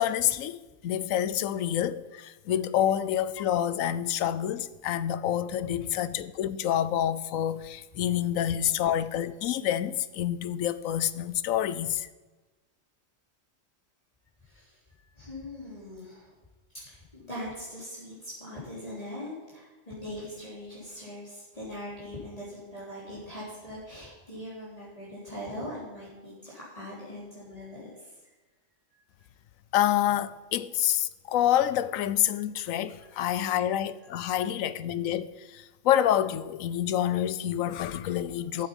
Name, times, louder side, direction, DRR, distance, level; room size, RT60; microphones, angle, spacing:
voice 1, 0.0-12.1 29.7-38.7, left 11 dB, 85° left, 1.0 m, -27 dB
voice 2, 14.4-16.3 16.9-28.3 33.0-33.1 34.1-34.5, left 1 dB, 30° left, 3.6 m, -41 dB
14.5 x 8.0 x 5.3 m
omnidirectional pair, 1.4 m